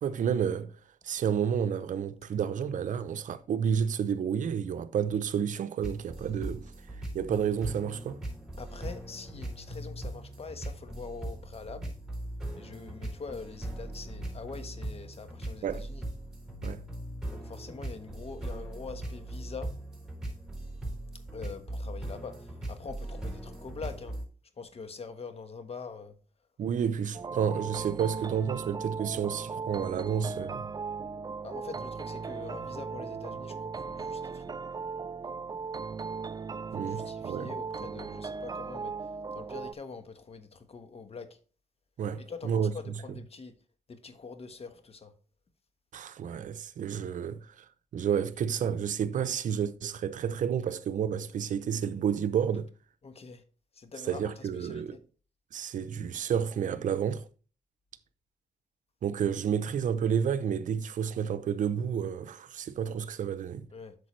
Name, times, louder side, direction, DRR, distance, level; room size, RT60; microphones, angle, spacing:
voice 1, 0.0-6.7 7.1-8.2 15.6-15.9 16.6-16.8 26.6-30.7 36.7-37.5 42.0-42.7 45.9-52.7 54.0-55.0 55.5-57.3 59.0-63.7, right 8 dB, 75° right, 0.6 m, -30 dB
sound 1, 5.8-24.3, right 1 dB, 5° right, 4.7 m, -39 dB
voice 2, 8.6-11.9 12.5-16.0 17.3-19.7 21.3-24.2 24.6-26.1 31.4-34.5 36.7-38.9 39.3-41.4 42.3-43.5 43.9-45.1 53.0-53.4 53.7-55.0 63.7-64.0, left 4 dB, 50° left, 1.2 m, -44 dB
sound 2, 27.1-39.7, right 5 dB, 30° right, 0.4 m, -37 dB
8.3 x 6.7 x 3.2 m
cardioid pair, 65°, 13 cm